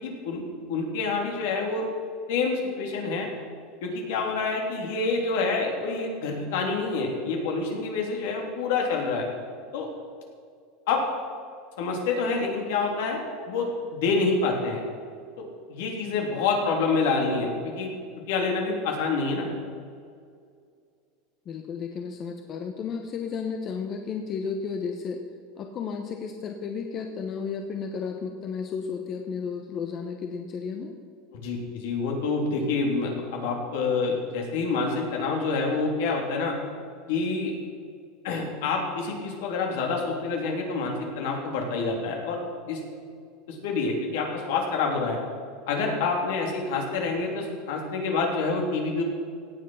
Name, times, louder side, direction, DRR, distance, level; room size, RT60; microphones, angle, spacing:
voice 1, 0.0-0.4 0.7-1.8 2.3-3.3 3.8-9.3 9.7-9.9 10.9-11.0 11.8-14.8 15.7-17.9 18.3-19.5 31.3-36.5 37.1-37.5 38.2-42.4 42.7-42.8 43.5-45.2 45.7-49.0, left 4 dB, 75° left, 1 dB, 3.2 m, -27 dB
voice 2, 21.5-25.2 25.6-30.9, left 6 dB, 35° left, 4 dB, 1.0 m, -33 dB
17.0 x 7.6 x 5.6 m, 2.2 s
supercardioid pair, 140°, 0 cm